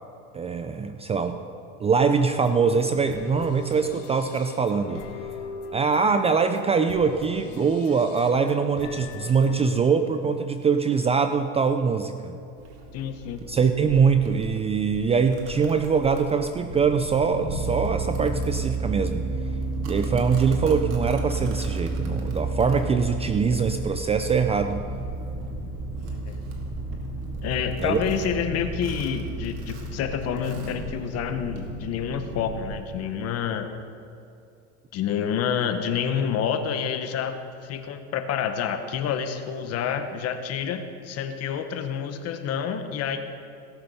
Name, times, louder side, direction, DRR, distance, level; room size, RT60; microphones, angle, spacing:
voice 1, 0.3-1.4 1.8-5.0 5.7-12.4 13.5-19.3 19.8-24.8 27.8-28.0, right 5 dB, 20° right, 8 dB, 0.4 m, -23 dB
sound 1, 2.3-9.8, left 4 dB, 85° left, 1.3 m, -41 dB
Domestic sounds home sounds, 12.6-31.7, right 1 dB, 60° right, 2.4 m, -43 dB
voice 2, 12.9-13.4 26.0-26.4 27.4-33.7 34.9-43.2, left 8 dB, 45° left, 7 dB, 1.2 m, -28 dB
sound 2, 16.6-32.8, right 2 dB, 40° right, 2.1 m, -32 dB
17.0 x 6.9 x 5.5 m, 2.5 s
supercardioid pair, 120°, 35 cm